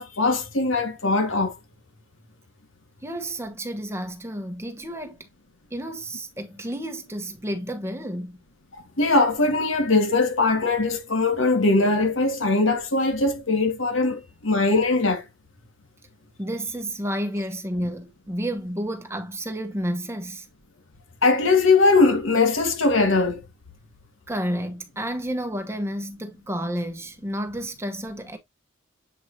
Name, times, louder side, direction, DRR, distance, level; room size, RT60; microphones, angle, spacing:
voice 1, 0.0-1.5 9.0-15.2 21.2-23.4, left 3 dB, 80° left, 1.8 m, -21 dB
voice 2, 3.0-5.2 5.7-8.4 16.4-20.5 24.3-28.4, right 1 dB, 15° right, 1.0 m, -31 dB
7.8 x 4.7 x 2.7 m
head